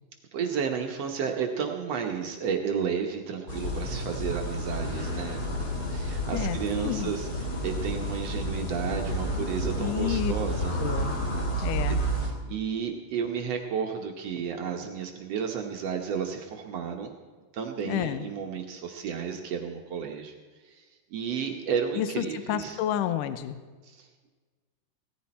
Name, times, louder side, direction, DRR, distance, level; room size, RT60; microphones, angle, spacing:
voice 1, 0.3-7.3 7.6-10.8 11.6-17.1 17.5-20.3 20.6-20.8 21.1-22.8 23.8-24.3, right 7 dB, 70° right, 3 dB, 1.6 m, -32 dB
sound 1, 3.5-12.3, right 1 dB, 35° left, 1.9 m, -30 dB
voice 2, 6.3-7.1 9.8-10.3 10.8-11.2 11.6-12.0 17.9-18.3 21.9-23.6, left 11 dB, 80° left, 11 dB, 2.1 m, -30 dB
17.5 x 14.0 x 4.3 m, 1.4 s
omnidirectional pair, 4.2 m